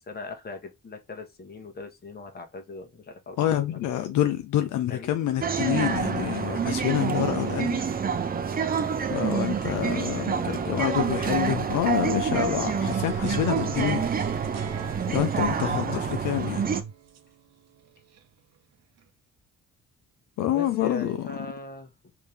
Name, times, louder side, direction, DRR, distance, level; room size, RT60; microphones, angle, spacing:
voice 1, 0.1-3.8 4.9-5.2 10.1-10.5 20.5-21.9, left 3 dB, 30° left, 1.1 m, -40 dB
voice 2, 3.4-7.8 9.1-14.1 15.1-16.8 20.4-21.3, left 11 dB, 75° left, 0.6 m, -27 dB
sound 1, 5.4-16.8, right 6 dB, 30° right, 0.6 m, -27 dB
sound 2, 12.8-18.2, right 7 dB, 60° right, 0.8 m, -36 dB
3.4 x 2.9 x 3.3 m
cardioid pair, 90°, 30 cm